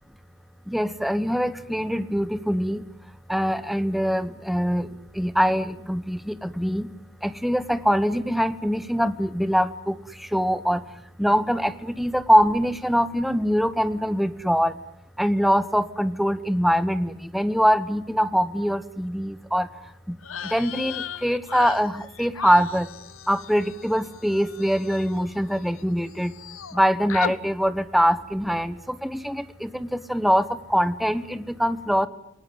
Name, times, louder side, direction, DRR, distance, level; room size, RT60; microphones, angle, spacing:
voice 1, 0.7-2.8 3.3-6.9 7.2-10.9 11.2-14.8 15.2-20.2 20.4-22.9 23.3-26.4 26.7-32.1, equal, ahead, 14 dB, 1.1 m, -23 dB
sound 1, 20.2-25.8 26.1-26.8 27.1-27.4, left 7 dB, 70° left, 1.0 m, -36 dB
28.0 x 19.5 x 9.5 m, 0.76 s
head